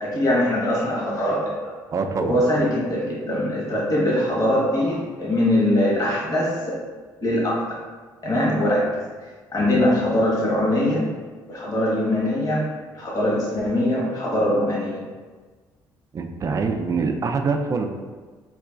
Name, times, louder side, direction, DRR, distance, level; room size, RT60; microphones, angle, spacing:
voice 1, 0.0-1.8 2.2-6.7 7.2-7.6 8.2-8.8 9.5-11.0 11.5-12.6 12.9-15.0, left 1 dB, 40° left, -5 dB, 1.1 m, -22 dB
voice 2, 1.9-2.4 9.6-9.8 16.1-17.9, right 4 dB, 40° right, 5 dB, 0.3 m, -25 dB
3.7 x 2.4 x 2.3 m, 1.4 s
supercardioid pair, 80°, 9 cm